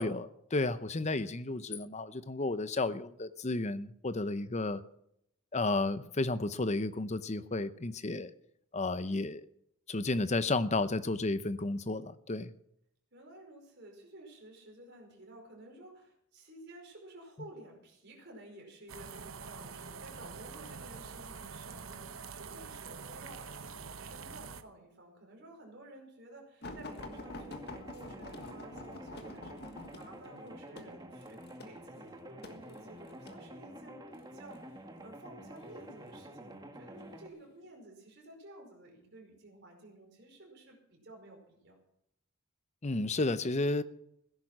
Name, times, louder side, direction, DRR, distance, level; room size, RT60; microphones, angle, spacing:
voice 1, 0.0-4.8 5.5-8.3 8.7-9.5 9.9-12.5 42.8-43.8, left 2 dB, 35° left, 0.7 m, -32 dB
voice 2, 13.1-41.8, right 1 dB, 55° right, 5.0 m, -53 dB
sound 1, 18.9-24.6, right 5 dB, 70° right, 0.9 m, -45 dB
sound 2, 26.6-33.4 34.2-34.6 35.6-36.2 36.9-37.1 37.5-37.6, left 2 dB, 50° left, 1.6 m, -47 dB
sound 3, 26.9-37.3, right 1 dB, 20° right, 1.5 m, -49 dB
16.5 x 10.5 x 6.1 m
head